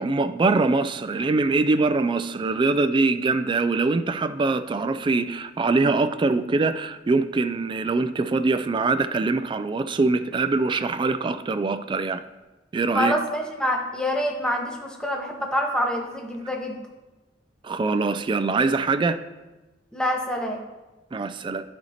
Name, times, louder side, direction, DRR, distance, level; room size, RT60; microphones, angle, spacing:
voice 1, 0.0-12.2 12.7-13.2 17.6-19.2 21.1-21.6, right 3 dB, 25° right, 0.3 m, -23 dB
voice 2, 12.9-16.8 19.9-20.6, equal, 5° left, 0.9 m, -26 dB
13.0 x 4.4 x 2.8 m
head